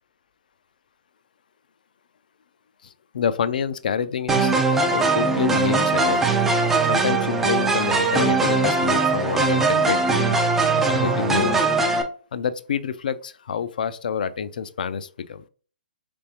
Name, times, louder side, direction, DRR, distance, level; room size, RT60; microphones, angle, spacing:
voice 1, 2.8-4.5 4.9-6.3 6.8-10.4 10.8-11.6 12.3-15.4, left 7 dB, 65° left, 0.4 m, -27 dB
sound 1, 4.3-12.0, right 3 dB, 5° right, 0.3 m, -20 dB
3.4 x 3.3 x 2.8 m
hypercardioid pair, 150°, 5 cm